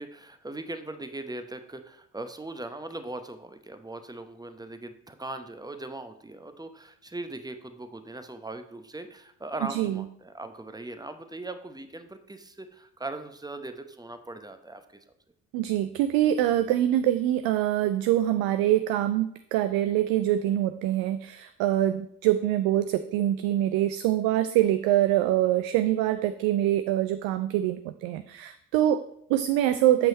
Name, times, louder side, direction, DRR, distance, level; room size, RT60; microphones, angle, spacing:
voice 1, 0.0-15.0, right 2 dB, 10° right, 9 dB, 0.8 m, -39 dB
voice 2, 9.7-10.0 15.5-30.1, right 12 dB, 55° right, 10 dB, 0.5 m, -24 dB
7.4 x 5.6 x 4.2 m, 0.70 s
figure-of-eight pair, 40°, 44 cm